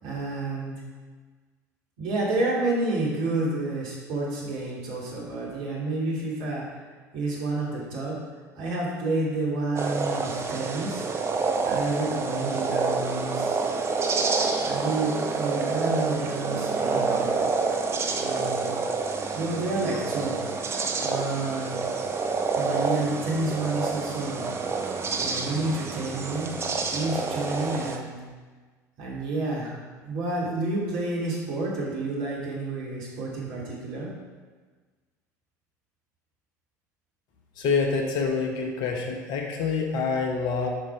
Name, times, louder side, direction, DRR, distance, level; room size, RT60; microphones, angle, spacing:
voice 1, 0.0-0.7 2.0-6.8 7.1-8.2 8.6-11.1 11.6-13.6 14.6-17.4 18.2-18.7 19.3-20.4 21.0-21.8 22.5-24.5 25.2-26.6 26.9-28.1 29.0-29.8 30.0-34.1, right 2 dB, 55° right, -5 dB, 2.8 m, -29 dB
sound 1, 9.8-28.0, right 4 dB, 30° right, 0.9 m, -28 dB
voice 2, 37.6-40.7, left 5 dB, 50° left, 2 dB, 1.3 m, -26 dB
8.1 x 5.9 x 4.9 m, 1.4 s
figure-of-eight pair, 65°, 10 cm